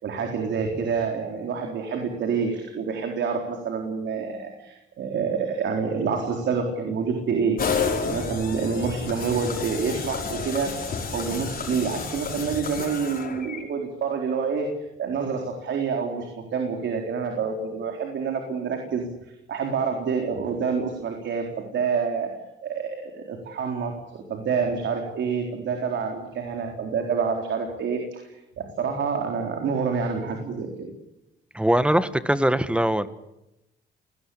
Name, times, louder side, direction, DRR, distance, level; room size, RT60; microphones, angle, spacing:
voice 1, 0.0-7.6 8.0-14.7 15.0-19.1 19.5-22.3 22.6-28.2 28.6-30.9, right 5 dB, 65° right, 3 dB, 4.0 m, -27 dB
sound 1, 7.6-13.6, left 5 dB, 45° left, 5.3 m, -30 dB
voice 2, 31.5-33.1, right 1 dB, 5° right, 13 dB, 1.5 m, -21 dB
30.0 x 19.0 x 8.6 m, 0.92 s
cardioid pair, 90°, 20 cm